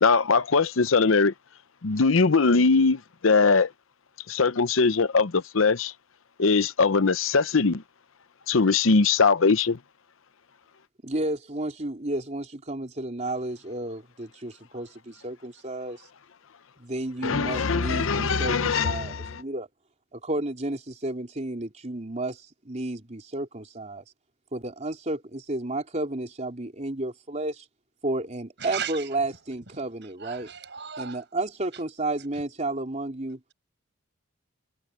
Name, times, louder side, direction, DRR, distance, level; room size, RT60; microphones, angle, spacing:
voice 1, 0.0-1.3 1.8-3.7 4.3-5.9 6.4-7.8 8.5-9.8 17.2-19.4, left 4 dB, 70° left, 0.8 m, -21 dB
voice 2, 11.0-16.0 16.8-19.7 20.1-24.0 24.5-27.6 28.0-30.5 31.0-33.4, right 2 dB, 35° right, 3.8 m, -32 dB
voice 3, 28.6-29.1 29.7-29.8 30.2-31.2, right 8 dB, 55° right, 8.0 m, -36 dB
head